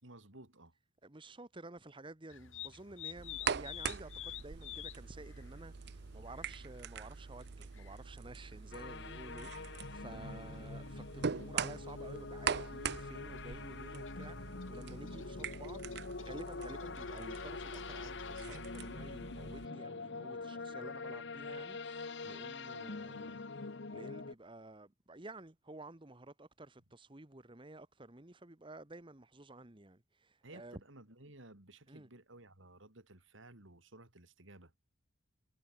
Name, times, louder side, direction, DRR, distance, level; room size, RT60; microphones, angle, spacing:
voice 1, 0.0-0.7 10.1-10.5 30.4-34.8, right 2 dB, 75° right, 4.1 m, -56 dB
voice 2, 1.0-15.8 16.2-30.8 31.9-32.1, right 2 dB, 25° right, 1.4 m, -52 dB
sound 1, 2.3-18.6, left 11 dB, 85° left, 2.3 m, -53 dB
sound 2, 3.2-19.7, right 6 dB, 55° right, 0.6 m, -43 dB
sound 3, 8.7-24.3, left 3 dB, 65° left, 1.0 m, -45 dB
head